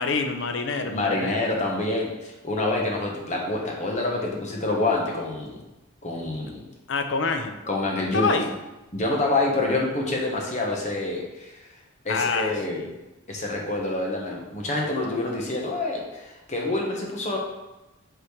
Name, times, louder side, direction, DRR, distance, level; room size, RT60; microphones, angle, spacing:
voice 1, 0.0-1.4 6.9-7.5 8.1-8.5 12.1-12.9, left 4 dB, 60° left, 6 dB, 0.6 m, -26 dB
voice 2, 0.8-5.6 6.0-6.6 7.7-8.4 8.9-11.7 12.0-12.8 13.3-17.4, left 2 dB, 35° left, -1 dB, 1.1 m, -27 dB
8.1 x 4.2 x 3.2 m, 1.0 s
head